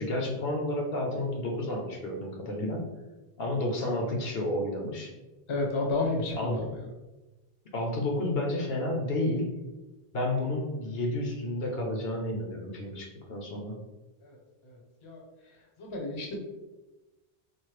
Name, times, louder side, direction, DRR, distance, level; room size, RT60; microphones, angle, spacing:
voice 1, 0.0-2.9 3.4-5.1 6.3-6.7 7.7-9.5 10.1-13.8, left 1 dB, 70° left, 0 dB, 0.9 m, -31 dB
voice 2, 5.5-6.7 14.2-14.4 14.6-15.2 15.8-16.4, left 2 dB, 35° left, -1 dB, 0.6 m, -31 dB
4.3 x 2.0 x 3.2 m, 1.1 s
omnidirectional pair, 1.1 m